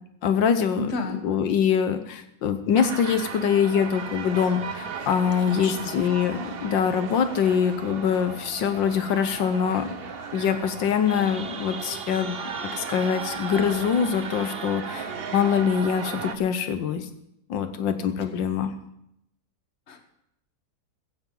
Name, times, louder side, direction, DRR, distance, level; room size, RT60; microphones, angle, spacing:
voice 1, 0.2-9.9 10.3-12.4 12.7-17.1 17.5-18.7, left 7 dB, 85° left, 9 dB, 1.7 m, -24 dB
voice 2, 0.8-1.2 5.5-5.9 19.9-20.0, left 2 dB, 40° left, 6 dB, 1.6 m, -31 dB
sound 1, 2.7-16.4, right 5 dB, 45° right, 0.9 m, -35 dB
15.5 x 15.0 x 3.9 m, 0.79 s
omnidirectional pair, 2.0 m